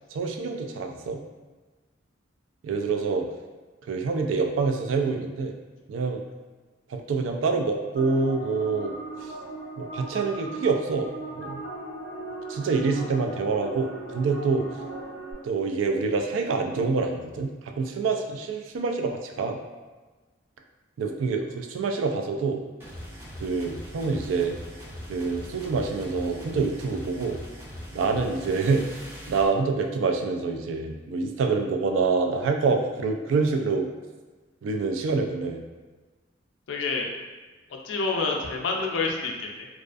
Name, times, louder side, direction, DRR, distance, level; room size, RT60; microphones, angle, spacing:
voice 1, 0.1-1.2 2.6-3.3 3.9-5.5 5.9-6.2 6.9-9.0 9.2-9.3 9.8-11.1 11.4-11.6 12.5-14.7 15.4-19.6 21.0-22.6 23.4-24.6 25.1-27.4 27.9-28.9 29.3-33.9 34.6-35.6, right 4 dB, 85° right, 3 dB, 0.3 m, -26 dB
sound 1, 8.0-15.3, right 2 dB, 65° right, 1.1 m, -38 dB
sound 2, 22.8-29.5, equal, 10° right, 0.5 m, -41 dB
voice 2, 36.7-37.1 37.7-39.7, left 3 dB, 75° left, 1 dB, 0.4 m, -28 dB
2.4 x 2.3 x 2.4 m, 1.3 s
head